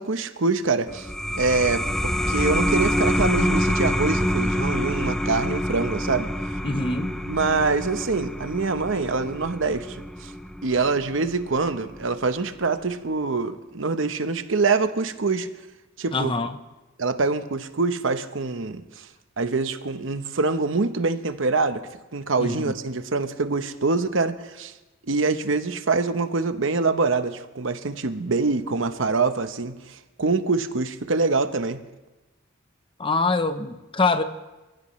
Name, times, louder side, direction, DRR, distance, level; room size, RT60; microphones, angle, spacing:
voice 1, 0.0-6.3 7.3-10.3 10.6-15.5 16.0-16.3 17.0-19.1 19.4-21.8 22.1-24.7 25.0-31.8, right 3 dB, 65° right, 10 dB, 0.9 m, -25 dB
sound 1, 0.9-12.0, equal, 5° left, 0.4 m, -26 dB
voice 2, 6.6-7.1 16.1-16.6 22.4-22.7 33.0-34.2, left 3 dB, 25° left, 9 dB, 0.8 m, -24 dB
27.5 x 15.5 x 3.2 m, 1.1 s
head